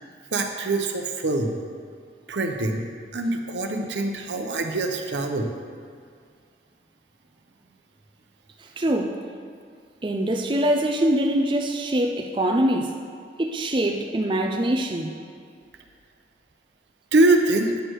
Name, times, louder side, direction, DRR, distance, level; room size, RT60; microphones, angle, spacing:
voice 1, 0.3-1.6 2.3-2.8 3.1-5.5 17.1-17.7, right 2 dB, 85° right, 4 dB, 0.8 m, -23 dB
voice 2, 8.8-9.2 10.0-12.9 13.4-15.1, right 1 dB, 30° right, 2 dB, 0.5 m, -23 dB
9.2 x 6.4 x 4.7 m, 2.2 s
head